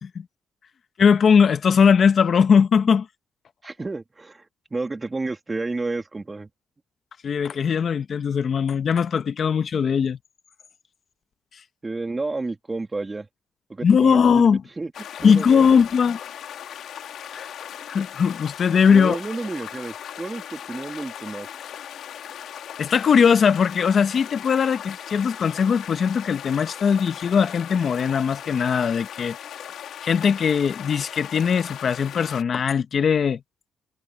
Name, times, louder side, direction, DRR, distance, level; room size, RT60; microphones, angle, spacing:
voice 1, 1.0-3.1 7.2-10.2 13.8-14.6 15.2-16.2 16.7-16.8 17.3-17.5 17.9-19.2 22.8-29.3 30.0-33.4, left 6 dB, 50° left, 1.2 m, -19 dB
voice 2, 3.6-4.5 4.7-6.5 11.8-13.3 13.7-14.5 14.8-15.8 18.9-21.5, right 3 dB, 20° right, 2.8 m, -31 dB
sound 1, 14.9-32.4, left 10 dB, 70° left, 3.8 m, -38 dB
cardioid pair, 90°, 0 cm